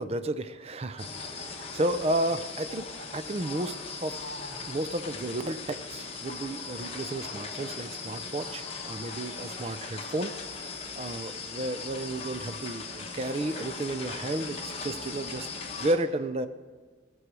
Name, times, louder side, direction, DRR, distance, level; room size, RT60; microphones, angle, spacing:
voice 1, 0.0-4.2 4.7-10.3 10.6-10.7 11.0-15.5 15.8-16.5, right 1 dB, 35° right, 11 dB, 0.5 m, -32 dB
sound 1, 1.0-15.9, left 4 dB, 30° left, 1.1 m, -39 dB
16.5 x 6.3 x 6.1 m, 1.4 s
head